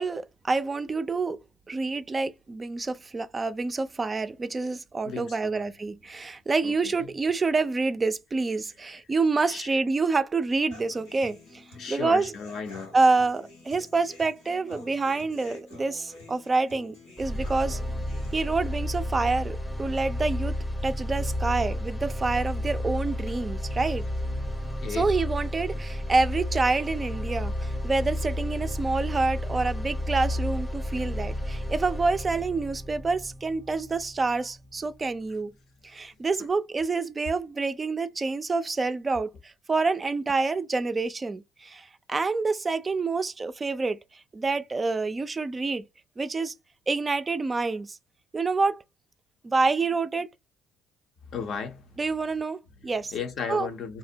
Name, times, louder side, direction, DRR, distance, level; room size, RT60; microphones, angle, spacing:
voice 1, 0.0-1.4 1.7-12.3 12.9-17.8 18.3-20.5 20.8-24.0 24.9-35.5 35.8-44.0 44.3-45.8 46.2-46.5 46.9-48.0 48.3-48.8 49.4-50.3 52.0-53.1 53.5-53.7, right 3 dB, 30° right, 0.3 m, -27 dB
voice 2, 5.0-5.6 6.6-7.1 9.5-9.7 11.8-12.9 24.6-25.1 51.3-51.8 53.1-54.0, left 6 dB, 60° left, 0.6 m, -35 dB
Human voice / Acoustic guitar, 10.7-18.7, left 2 dB, 85° left, 1.1 m, -48 dB
sound 1, 17.2-35.2, left 1 dB, 10° left, 0.6 m, -32 dB
2.6 x 2.0 x 2.6 m
hypercardioid pair, 60°, 0 cm